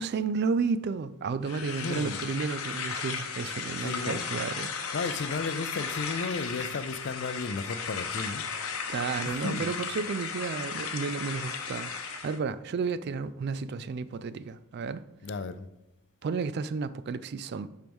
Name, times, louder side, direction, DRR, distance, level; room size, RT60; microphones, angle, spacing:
voice 1, 0.0-4.7 8.9-15.0 16.2-17.7, right 5 dB, 50° right, 0.3 m, -32 dB
sound 1, 1.4-12.4, left 6 dB, 75° left, 0.8 m, -35 dB
voice 2, 1.8-2.3 3.8-4.3 4.9-8.4 9.3-9.7 15.2-15.7, left 4 dB, 50° left, 0.5 m, -34 dB
11.0 x 4.5 x 3.6 m
head